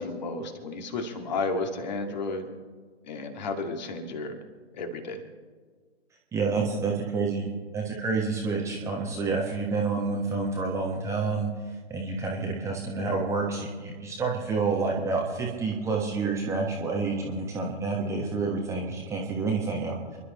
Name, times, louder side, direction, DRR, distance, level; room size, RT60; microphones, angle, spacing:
voice 1, 0.0-2.5 3.0-4.4 4.7-5.2, left 3 dB, 40° left, 5 dB, 2.1 m, -32 dB
voice 2, 6.3-11.5 11.9-20.2, right 4 dB, 10° right, -1 dB, 1.4 m, -29 dB
29.5 x 11.5 x 3.2 m, 1.5 s
figure-of-eight pair, 125°, 34 cm